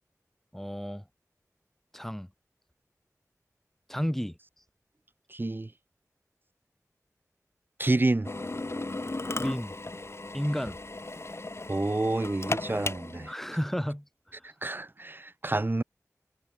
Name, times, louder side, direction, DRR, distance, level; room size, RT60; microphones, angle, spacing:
voice 1, 0.5-1.0 1.9-2.3 3.9-4.4 9.4-9.7 10.3-10.8 13.3-14.0, equal, 5° left, 2.6 m, -31 dB
voice 2, 5.3-5.7 7.8-8.3 11.7-13.3 14.6-15.8, right 2 dB, 35° right, 0.8 m, -28 dB
Drill, 8.2-13.3, left 2 dB, 45° left, 2.7 m, -36 dB
wide cardioid pair, 50°, 6 cm